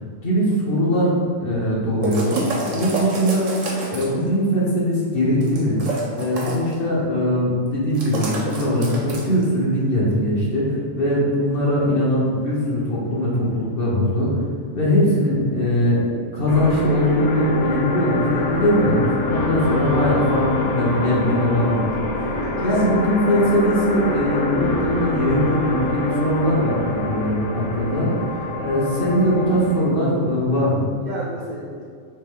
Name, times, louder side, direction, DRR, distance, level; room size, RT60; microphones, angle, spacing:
voice 1, 0.2-2.4 2.7-3.5 3.8-5.8 6.1-14.3 14.7-16.1 16.3-21.8 22.2-22.4 22.6-28.1 28.5-30.9, equal, 50° left, -5 dB, 1.0 m, -21 dB
sound 1, 2.0-4.2 5.4-6.7 7.9-9.4, right 2 dB, 75° right, 1.2 m, -28 dB
sound 2, 16.5-29.8, left 2 dB, 75° left, 0.9 m, -25 dB
voice 2, 22.3-23.2 27.8-28.1 31.0-31.8, right 1 dB, 60° right, -5 dB, 0.5 m, -34 dB
3.3 x 3.3 x 3.5 m, 2.1 s
omnidirectional pair, 1.3 m